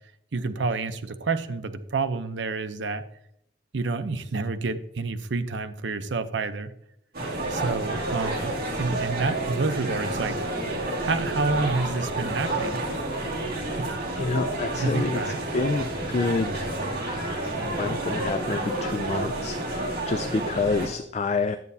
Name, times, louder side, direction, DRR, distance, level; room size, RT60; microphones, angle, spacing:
voice 1, 0.3-3.0 3.7-6.7 7.5-10.4 11.0-12.8 13.8-13.9 14.7-15.4, right 3 dB, 75° right, 9 dB, 0.7 m, -29 dB
sound 1, 7.1-20.9, right 2 dB, 50° right, 2.1 m, -30 dB
voice 2, 14.2-16.8 17.0-21.6, left 3 dB, 35° left, 9 dB, 0.3 m, -28 dB
10.5 x 8.2 x 2.7 m, 0.73 s
head